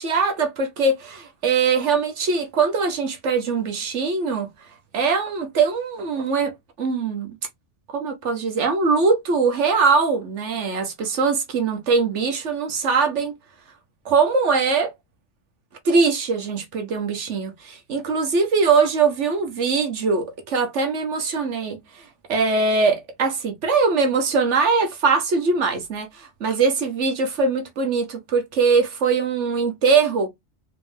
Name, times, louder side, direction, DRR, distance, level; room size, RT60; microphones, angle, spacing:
voice 1, 0.0-4.5 4.9-6.5 6.8-7.3 7.9-13.3 14.0-14.9 15.8-21.8 22.3-30.3, right 4 dB, 70° right, 1.4 m, -21 dB
4.1 x 3.7 x 2.7 m
omnidirectional pair, 1.2 m